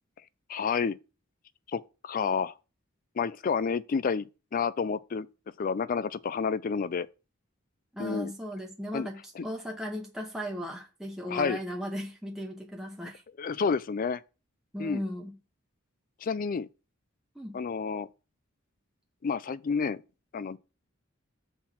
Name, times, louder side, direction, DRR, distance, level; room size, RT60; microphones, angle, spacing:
voice 1, 0.5-1.0 1.7-2.5 3.2-4.3 4.5-5.3 5.6-7.1 8.0-8.3 8.9-9.1 9.4-9.5 11.3-11.6 13.4-14.2 14.8-15.0 16.2-16.7 17.5-18.1 19.2-20.0 20.3-20.6, left 5 dB, 45° left, 0.4 m, -29 dB
voice 2, 7.9-13.2 14.7-15.4 17.3-17.6, equal, ahead, 0.8 m, -37 dB
5.9 x 4.3 x 5.9 m
head